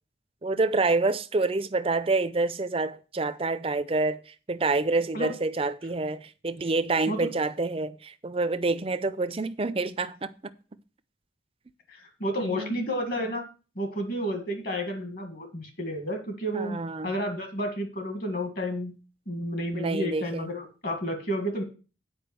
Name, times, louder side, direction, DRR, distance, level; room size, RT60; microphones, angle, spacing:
voice 1, 0.4-10.5 12.4-12.9 16.5-17.2 19.7-20.6, right 3 dB, 30° right, 0.5 m, -28 dB
voice 2, 11.9-13.4 13.7-16.8 17.0-19.0 19.3-21.6, equal, 50° left, 1.7 m, -31 dB
8.8 x 5.0 x 7.6 m
head